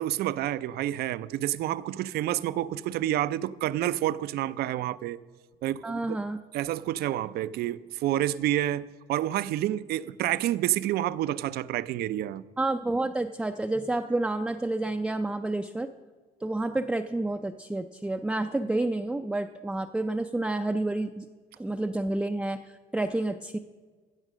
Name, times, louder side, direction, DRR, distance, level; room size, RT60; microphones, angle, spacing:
voice 1, 0.0-5.2 5.6-6.2 6.5-12.4, right 13 dB, 70° right, 0.4 m, -29 dB
voice 2, 5.8-6.4 12.6-15.9 16.4-21.3 21.6-22.6 22.9-23.6, right 2 dB, 5° right, 0.3 m, -29 dB
15.5 x 6.4 x 6.2 m
cardioid pair, 110°, 17 cm